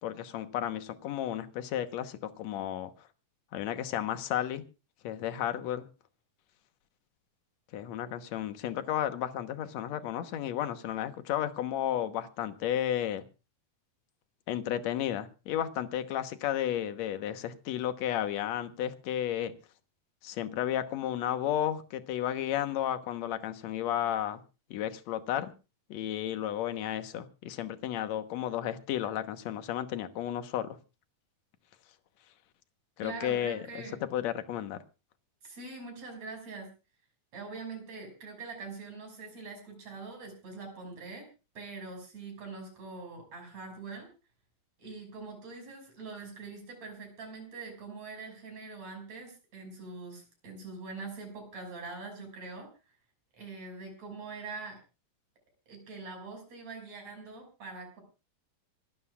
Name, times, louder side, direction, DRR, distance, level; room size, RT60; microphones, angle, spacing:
voice 1, 0.0-2.9 3.5-4.6 5.0-5.9 7.7-13.2 14.5-19.5 20.2-24.4 24.7-25.5 25.9-30.7 33.0-33.8 34.1-34.8, left 11 dB, 65° left, 9 dB, 2.2 m, -33 dB
voice 2, 33.0-34.0 35.4-36.7 37.3-41.3 41.6-44.1 44.8-52.7 53.4-54.8 55.7-58.0, right 4 dB, 55° right, 3 dB, 7.3 m, -43 dB
26.5 x 13.0 x 2.4 m, 0.31 s
omnidirectional pair, 3.7 m